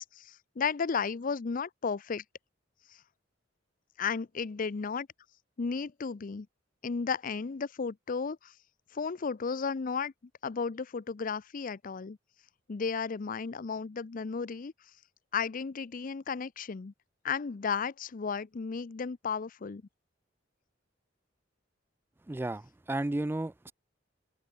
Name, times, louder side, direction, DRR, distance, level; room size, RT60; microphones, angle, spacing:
voice 1, 0.0-2.2 4.0-5.1 5.6-6.5 6.8-8.5 8.9-10.1 10.4-12.2 12.7-14.7 15.3-16.9 17.2-19.8, left 5 dB, 45° left, 0.5 m, -34 dB
voice 2, 22.3-23.7, right 2 dB, 10° right, 0.3 m, -33 dB
open air
head